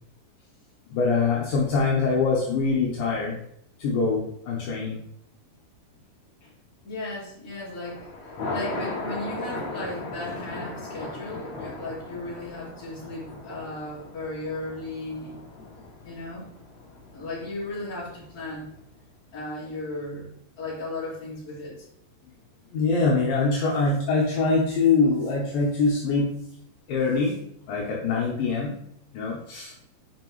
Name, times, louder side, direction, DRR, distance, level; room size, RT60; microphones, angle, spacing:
voice 1, 0.9-3.4 3.8-5.0 22.7-26.3 26.9-27.3 27.7-28.7 29.1-29.7, left 4 dB, 75° left, -3 dB, 2.5 m, -23 dB
voice 2, 6.8-8.1 8.5-15.4 16.0-16.5 17.1-18.7 19.3-20.3 20.6-21.7, left 2 dB, 25° left, -8 dB, 2.9 m, -35 dB
Thunder, 7.5-18.9, left 2 dB, 55° left, 2.3 m, -38 dB
7.4 x 5.1 x 3.1 m, 0.71 s
omnidirectional pair, 4.4 m